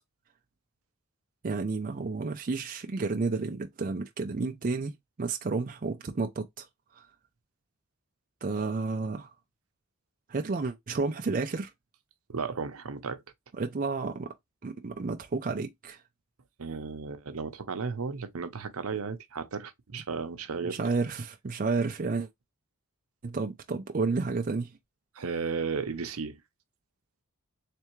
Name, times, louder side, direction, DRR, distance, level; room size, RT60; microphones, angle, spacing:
voice 1, 1.4-4.9 5.2-6.7 8.4-9.3 10.3-11.7 13.6-14.3 14.6-16.0 19.9-20.0 20.6-22.3 23.2-24.7, right 4 dB, 40° right, 0.4 m, -31 dB
voice 2, 12.3-13.2 16.6-20.8 25.2-26.4, right 5 dB, 80° right, 0.7 m, -34 dB
3.3 x 3.3 x 3.1 m
head